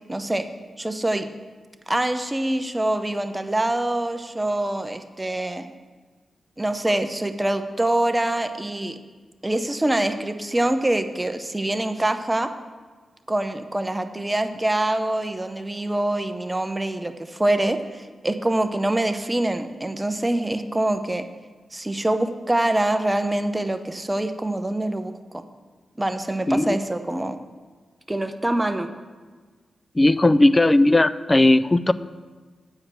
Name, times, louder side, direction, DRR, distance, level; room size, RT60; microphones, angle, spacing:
voice 1, 0.1-0.5 0.8-1.3 1.9-5.7 6.6-9.0 9.4-12.5 13.3-21.2 21.7-25.4 26.0-27.4 28.1-28.9, right 1 dB, 20° right, 8 dB, 0.7 m, -25 dB
voice 2, 26.5-26.8 29.9-31.9, left 2 dB, 25° left, 15 dB, 0.4 m, -17 dB
8.6 x 5.0 x 7.5 m, 1.4 s
cardioid pair, 55°, 0 cm